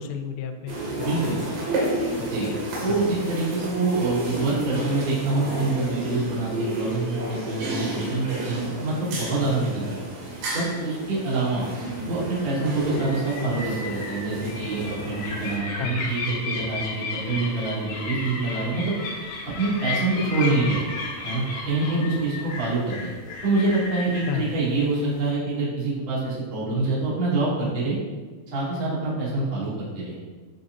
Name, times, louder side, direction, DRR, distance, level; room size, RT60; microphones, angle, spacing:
voice 1, 0.0-1.5 2.2-3.1 15.8-16.0 24.3-24.6, left 8 dB, 85° left, 6 dB, 3.1 m, -33 dB
sound 1, 0.7-15.6, right 1 dB, 70° right, 3.9 m, -31 dB
voice 2, 1.0-1.4 2.3-2.5 2.8-9.8 10.5-11.7 12.1-18.9 19.6-20.9 21.2-23.1 23.4-28.0 28.5-30.2, right 3 dB, 35° right, -9 dB, 2.1 m, -26 dB
sound 2, 12.8-25.3, left 3 dB, 65° left, 3.8 m, -34 dB
10.0 x 6.1 x 2.6 m, 1.4 s
omnidirectional pair, 5.7 m